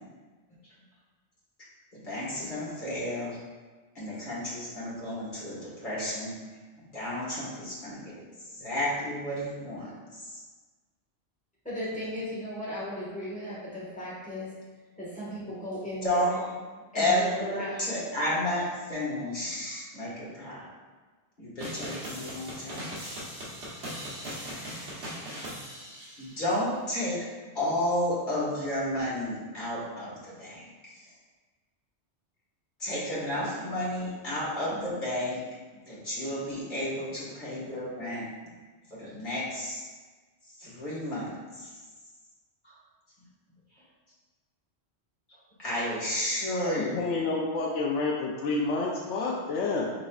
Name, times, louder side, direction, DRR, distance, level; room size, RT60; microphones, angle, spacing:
voice 1, 1.9-3.4 4.0-6.4 6.9-8.2 8.5-10.4 16.0-16.4 16.9-20.7 21.4-23.2 24.4-25.1 26.2-27.2 27.5-31.1 32.8-35.4 35.9-38.3 38.9-39.8 40.6-41.8 42.6-42.8 45.6-47.0, left 1 dB, 45° left, -8 dB, 1.8 m, -32 dB
voice 2, 11.6-14.6 15.0-16.4 16.9-17.3 17.6-17.9, equal, 5° left, -8 dB, 1.4 m, -36 dB
sound 1, 21.6-26.5, equal, 75° right, 1.4 m, -39 dB
voice 3, 46.5-49.9, left 3 dB, 85° left, -2 dB, 0.9 m, -29 dB
5.1 x 4.1 x 2.3 m, 1.3 s
omnidirectional pair, 1.2 m